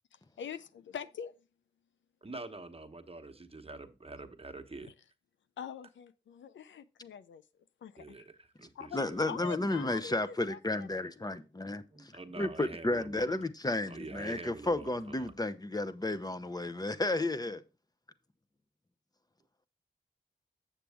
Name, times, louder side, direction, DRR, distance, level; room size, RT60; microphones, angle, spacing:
voice 1, 0.4-1.3 5.6-7.4 7.8-8.3 8.7-9.0 9.3-11.1, left 8 dB, 85° left, 0.5 m, -44 dB
voice 2, 2.2-4.9 8.0-9.3 11.9-13.2 13.9-14.9 15.2-15.3, right 3 dB, 30° right, 1.1 m, -46 dB
voice 3, 8.9-11.8 12.4-17.6, left 2 dB, 20° left, 0.7 m, -32 dB
7.4 x 6.9 x 3.4 m
cardioid pair, 45°, 19 cm